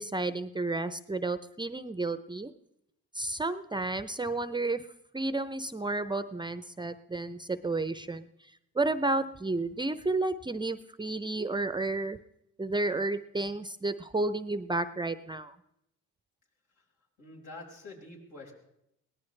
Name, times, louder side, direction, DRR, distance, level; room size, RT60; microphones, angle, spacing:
voice 1, 0.0-2.5 3.1-4.9 5.1-8.3 8.8-12.2 12.6-15.6, right 2 dB, 15° right, 12 dB, 0.6 m, -31 dB
voice 2, 17.2-18.5, left 2 dB, 70° left, -1 dB, 5.3 m, -46 dB
23.0 x 18.0 x 3.3 m, 0.80 s
cardioid pair, 90°, 30 cm